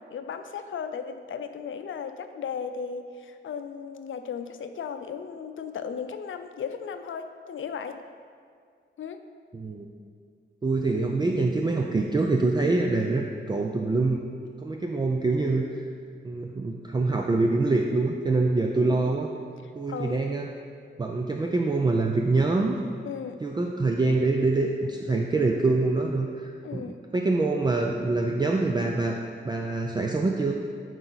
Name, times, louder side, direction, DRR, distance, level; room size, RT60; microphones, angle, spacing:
voice 1, 0.0-8.0 9.0-9.2 18.8-19.0 19.9-20.2 23.0-23.4 26.6-27.0, left 6 dB, 85° left, 8 dB, 0.5 m, -36 dB
voice 2, 9.5-9.9 10.6-14.2 14.6-15.8 16.2-19.3 19.7-20.5 21.0-22.8 23.4-29.2 29.4-30.5, right 3 dB, 20° right, 1 dB, 0.4 m, -25 dB
12.0 x 4.7 x 4.0 m, 2.1 s
wide cardioid pair, 165°, 20 cm